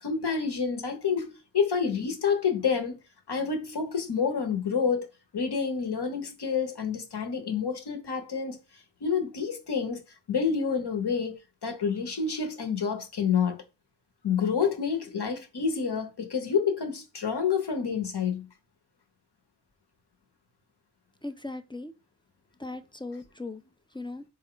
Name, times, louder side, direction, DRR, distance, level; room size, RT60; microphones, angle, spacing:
voice 1, 0.0-3.0 3.3-5.1 5.3-8.6 9.0-10.0 10.3-11.4 11.6-13.6 14.2-18.5, left 6 dB, 65° left, 1.0 m, -28 dB
voice 2, 21.2-21.9 22.6-23.6 23.9-24.2, left 2 dB, 15° left, 0.3 m, -38 dB
4.2 x 2.2 x 3.8 m
wide cardioid pair, 45°, 42 cm